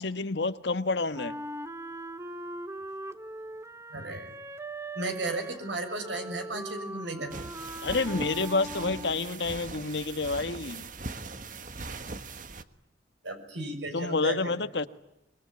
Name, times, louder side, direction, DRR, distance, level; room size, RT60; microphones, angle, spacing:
voice 1, 0.0-1.3 7.8-10.8 13.9-14.9, left 3 dB, 70° left, 1.4 m, -29 dB
Wind instrument woodwind instrument, 1.1-9.3, right 1 dB, 15° right, 1.1 m, -40 dB
voice 2, 3.9-4.3 4.9-7.3 13.2-14.6, right 2 dB, 85° right, 6.8 m, -34 dB
sound 1, 7.3-12.6, right 3 dB, 45° right, 1.4 m, -40 dB
25.5 x 23.0 x 9.5 m
head